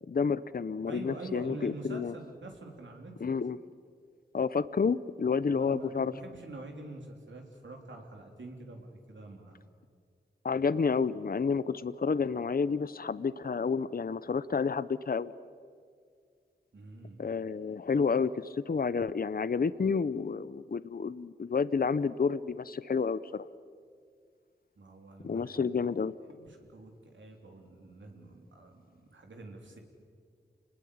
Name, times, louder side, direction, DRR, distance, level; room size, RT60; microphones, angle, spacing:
voice 1, 0.1-2.1 3.2-3.6 4.3-6.1 10.4-15.3 17.2-23.5 25.2-26.1, left 5 dB, 55° left, 16 dB, 0.7 m, -30 dB
voice 2, 0.9-3.1 5.5-9.6 10.5-10.6 16.7-17.3 24.8-25.5 26.3-28.8 29.1-29.8, right 2 dB, 90° right, 2 dB, 3.7 m, -46 dB
28.5 x 20.0 x 8.7 m, 2.1 s
wide cardioid pair, 65°, 19 cm